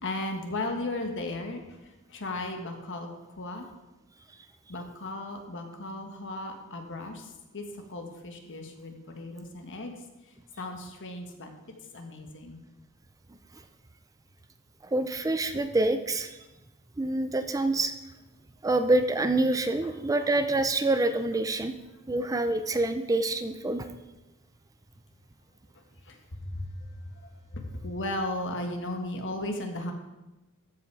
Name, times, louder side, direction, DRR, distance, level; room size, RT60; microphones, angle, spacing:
voice 1, 0.0-3.1 3.4-3.7 4.7-9.9 10.6-11.5 11.9-12.6 25.7-27.2 27.5-29.9, left 2 dB, 60° left, 4 dB, 1.4 m, -36 dB
voice 2, 14.8-16.4 17.0-17.9 18.6-21.7 22.1-23.9, right 2 dB, 15° right, 9 dB, 0.4 m, -26 dB
13.0 x 5.7 x 4.7 m, 1.1 s
head